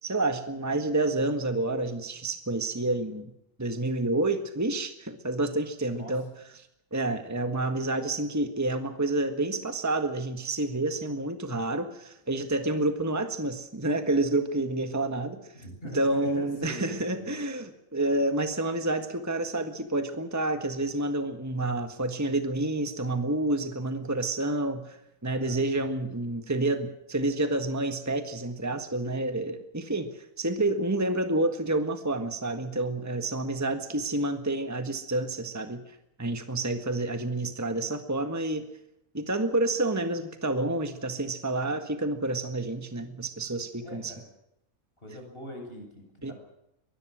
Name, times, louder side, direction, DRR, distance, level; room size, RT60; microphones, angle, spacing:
voice 1, 0.0-3.3 3.6-6.3 6.9-15.4 15.9-25.0 25.2-35.8 36.2-38.6 39.1-44.1 46.2-46.3, right 2 dB, 10° right, 7 dB, 1.6 m, -29 dB
voice 2, 5.9-6.2 15.5-17.4 25.3-25.6 43.8-44.2 45.0-46.3, equal, 40° left, 2 dB, 8.1 m, -43 dB
23.5 x 21.0 x 6.3 m, 0.81 s
omnidirectional pair, 1.5 m